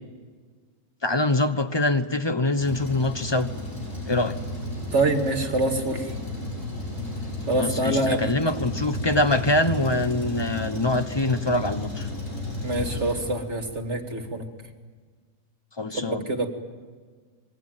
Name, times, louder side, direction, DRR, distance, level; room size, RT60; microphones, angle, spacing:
voice 1, 1.0-3.5 4.1-4.4 7.5-12.1 15.8-16.3, left 2 dB, 20° left, 9 dB, 0.9 m, -24 dB
Truck, 2.6-13.8, left 2 dB, 55° left, 7.7 m, -33 dB
voice 2, 4.9-6.1 7.5-8.3 12.6-14.4 15.9-16.5, right 2 dB, 50° right, 5 dB, 2.4 m, -25 dB
26.0 x 22.0 x 9.1 m, 1.5 s
omnidirectional pair, 1.6 m